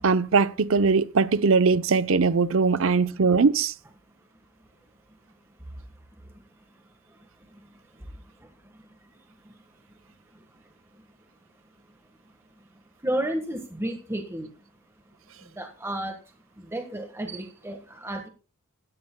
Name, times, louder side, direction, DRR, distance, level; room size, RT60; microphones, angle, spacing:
voice 1, 0.0-3.7, right 4 dB, 65° right, 0.7 m, -21 dB
voice 2, 13.0-14.5 15.6-16.2 16.6-18.3, right 1 dB, 10° right, 1.4 m, -32 dB
16.0 x 13.0 x 2.2 m
head